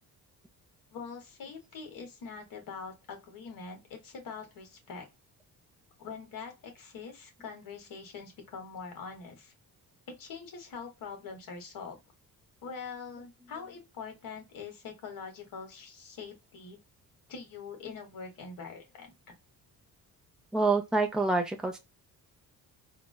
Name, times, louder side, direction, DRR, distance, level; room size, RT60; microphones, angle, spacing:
voice 1, 0.9-5.0 6.0-9.5 10.1-12.0 12.6-16.8 17.3-19.1, left 5 dB, 65° left, 1.4 m, -43 dB
voice 2, 20.5-21.8, right 3 dB, ahead, 0.5 m, -27 dB
3.7 x 2.1 x 2.2 m
cardioid pair, 115°, 36 cm